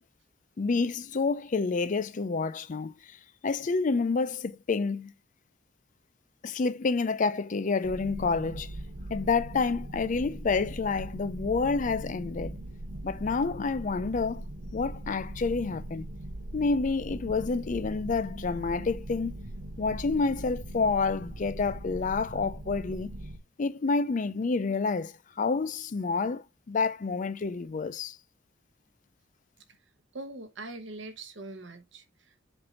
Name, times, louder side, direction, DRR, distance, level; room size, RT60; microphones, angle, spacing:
voice 1, 0.6-3.2 3.4-5.1 6.4-8.8 9.1-12.6 13.0-14.4 14.7-16.1 16.5-19.3 19.8-23.1 23.6-28.2, left 4 dB, 40° left, 0.4 m, -28 dB
sound 1, 7.8-23.4, right 1 dB, 85° right, 1.0 m, -40 dB
voice 2, 30.1-32.4, right 2 dB, 65° right, 1.1 m, -42 dB
7.7 x 2.7 x 5.6 m
head